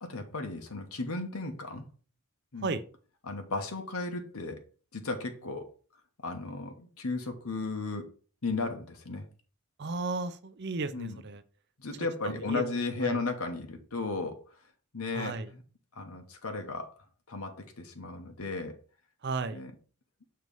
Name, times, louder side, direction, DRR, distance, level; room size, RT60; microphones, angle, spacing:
voice 1, 0.0-1.8 2.5-2.7 3.2-4.6 4.9-5.7 6.2-8.1 8.4-9.3 10.9-11.2 11.8-14.4 14.9-15.6 15.9-16.9 17.3-18.8 19.5-19.7, left 3 dB, 80° left, 5 dB, 1.0 m, -35 dB
voice 2, 9.8-11.4 12.2-13.2 15.1-15.5 19.2-19.6, right 3 dB, 50° right, 11 dB, 0.5 m, -34 dB
6.6 x 3.1 x 5.3 m, 0.39 s
head